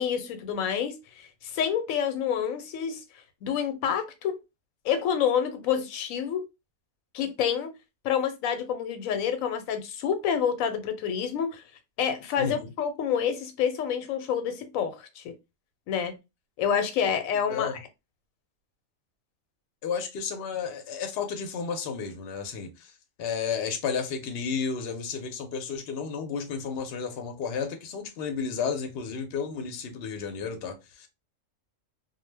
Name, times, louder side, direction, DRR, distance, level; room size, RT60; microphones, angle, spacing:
voice 1, 0.0-3.0 3.4-4.4 4.8-6.5 7.1-7.7 8.0-11.6 12.0-15.4 15.9-16.2 16.6-17.7, left 8 dB, 85° left, 1.0 m, -28 dB
voice 2, 12.4-12.7 17.5-17.8 19.8-22.9 23.2-31.1, left 6 dB, 60° left, 0.7 m, -32 dB
2.2 x 2.1 x 3.2 m
omnidirectional pair, 1.4 m